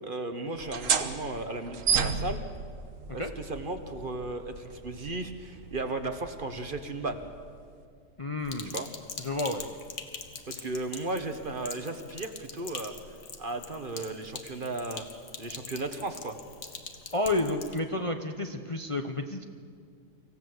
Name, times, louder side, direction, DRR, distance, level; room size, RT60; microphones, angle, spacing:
voice 1, 0.0-2.4 3.1-7.2 8.7-8.9 10.5-12.9 13.4-15.1 15.4-16.4 17.9-18.0, right 2 dB, 40° right, 7 dB, 1.4 m, -35 dB
sound 1, 0.5-7.8, right 6 dB, 75° right, 1.5 m, -34 dB
voice 2, 8.2-8.7 9.2-9.6 17.1-19.5, left 2 dB, 30° left, 5 dB, 0.8 m, -30 dB
Sink (filling or washing), 8.4-17.8, left 5 dB, 90° left, 1.8 m, -43 dB
25.0 x 16.0 x 7.9 m, 2.1 s
omnidirectional pair, 1.4 m